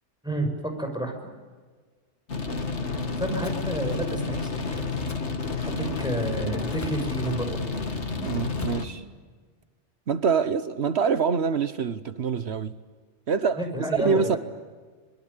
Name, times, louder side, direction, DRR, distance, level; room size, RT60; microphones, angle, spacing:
voice 1, 0.8-1.1 3.2-4.8 5.6-7.6 13.6-14.4, right 1 dB, 5° right, 3 dB, 6.1 m, -30 dB
sound 1, 2.3-8.9, left 4 dB, 75° left, 2.4 m, -30 dB
sound 2, 3.4-3.6 5.1-5.3 6.7-7.1 8.5-8.9, left 2 dB, 15° left, 0.9 m, -41 dB
voice 2, 8.2-9.0 10.1-12.8 13.3-13.7 14.0-14.4, right 6 dB, 65° right, 12 dB, 1.2 m, -25 dB
25.5 x 22.5 x 9.8 m, 1.5 s
omnidirectional pair, 1.2 m